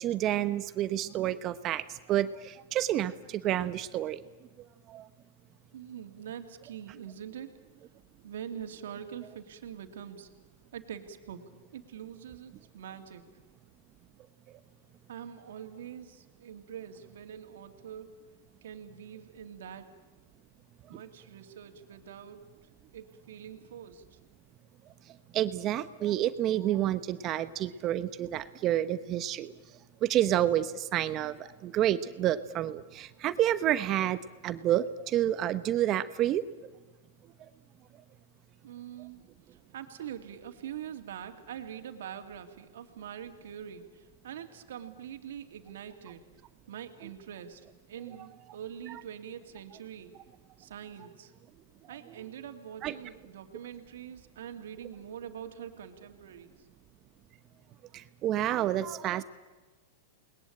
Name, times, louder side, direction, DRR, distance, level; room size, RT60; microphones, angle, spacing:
voice 1, 0.0-4.2 4.9-5.1 25.3-29.5 30.0-34.2 34.4-36.4 52.8-52.9 57.9-59.2, right 12 dB, 35° right, 13 dB, 1.0 m, -29 dB
voice 2, 5.7-7.5 8.2-10.3 10.7-13.3 15.1-18.1 18.6-19.9 20.9-22.4 22.9-24.0 38.6-39.3 39.7-46.2 46.7-50.2 50.6-51.3 51.9-56.5, right 9 dB, 75° right, 6 dB, 2.7 m, -44 dB
29.0 x 20.5 x 8.8 m, 1.2 s
hypercardioid pair, 130°, 0 cm